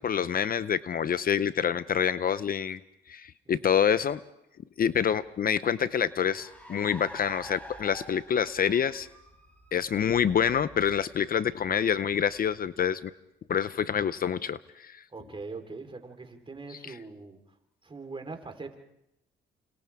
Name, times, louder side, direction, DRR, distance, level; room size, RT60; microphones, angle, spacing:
voice 1, 0.0-2.8 3.1-4.2 4.8-9.1 9.7-13.1 13.5-15.0, left 8 dB, 45° left, 15 dB, 0.7 m, -27 dB
voice 2, 3.5-3.8 15.1-17.4 17.8-18.8, right 3 dB, 25° right, 5 dB, 3.9 m, -42 dB
Car, 5.2-13.0, equal, 5° left, 7.0 m, -49 dB
29.5 x 27.0 x 3.6 m, 0.84 s
cardioid pair, 90°, 20 cm